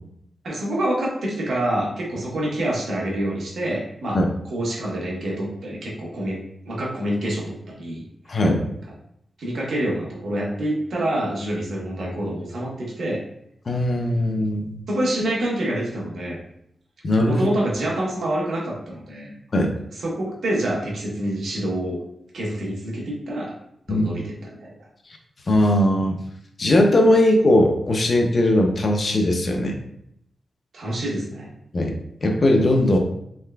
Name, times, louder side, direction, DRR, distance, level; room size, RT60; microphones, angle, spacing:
voice 1, 0.4-4.2 4.5-6.4 6.6-8.4 9.4-13.2 14.9-16.4 17.3-19.3 20.0-22.0 22.3-23.5 23.9-24.7 30.7-31.5, right 1 dB, 80° right, -4 dB, 1.1 m, -27 dB
voice 2, 8.3-8.6 13.7-14.7 17.0-17.4 19.5-19.7 23.9-24.1 25.5-26.2 26.6-29.8 31.7-31.9 32.2-33.0, left 1 dB, 50° left, 2 dB, 0.6 m, -19 dB
3.6 x 3.2 x 2.3 m, 0.74 s
wide cardioid pair, 100°, 0 cm